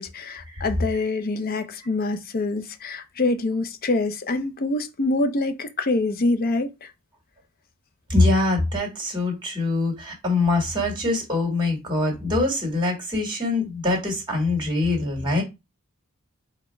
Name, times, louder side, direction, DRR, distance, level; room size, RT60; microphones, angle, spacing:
voice 1, 0.0-6.7, left 2 dB, 45° left, 0.5 m, -25 dB
voice 2, 8.1-15.4, left 2 dB, 20° right, 1.7 m, -23 dB
4.3 x 2.1 x 4.4 m
head